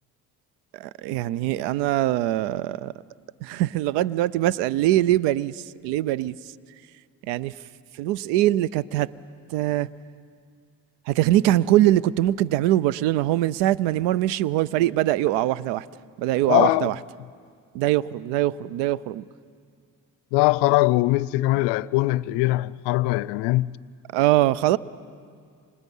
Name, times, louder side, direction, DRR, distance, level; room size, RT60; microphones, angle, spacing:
voice 1, 0.8-2.9 3.4-6.4 7.3-7.5 8.0-9.1 9.5-9.9 11.1-15.8 16.2-16.9 17.7-19.2 24.1-24.8, right 14 dB, 85° right, 0.6 m, -22 dB
voice 2, 16.5-17.0 20.3-23.8, left 19 dB, 85° left, 0.5 m, -21 dB
29.0 x 26.0 x 5.5 m
hypercardioid pair, 50°, 40 cm